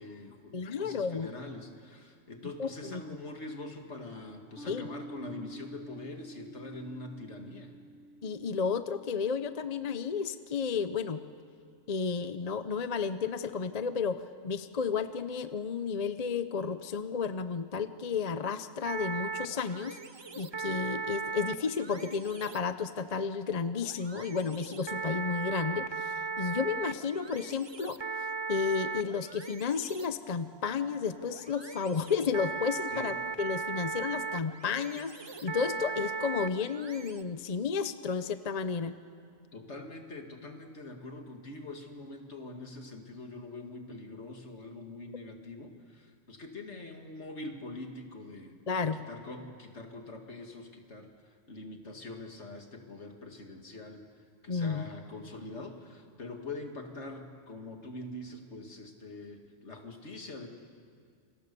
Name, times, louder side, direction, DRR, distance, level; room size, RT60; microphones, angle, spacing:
voice 1, 0.0-7.7 32.9-33.1 39.5-48.6 49.1-54.1 54.4-60.5, left 2 dB, 65° left, 3 dB, 2.5 m, -44 dB
voice 2, 0.5-1.3 2.6-3.0 4.7-4.9 8.2-11.2 11.9-20.0 20.4-38.9 48.7-49.0 54.5-54.8, left 5 dB, 40° left, 11 dB, 0.7 m, -32 dB
sound 1, 4.6-11.3, right 1 dB, ahead, 3.4 m, -50 dB
sound 2, 18.8-37.2, right 5 dB, 30° right, 0.5 m, -38 dB
28.5 x 24.5 x 6.9 m, 2.2 s
omnidirectional pair, 1.3 m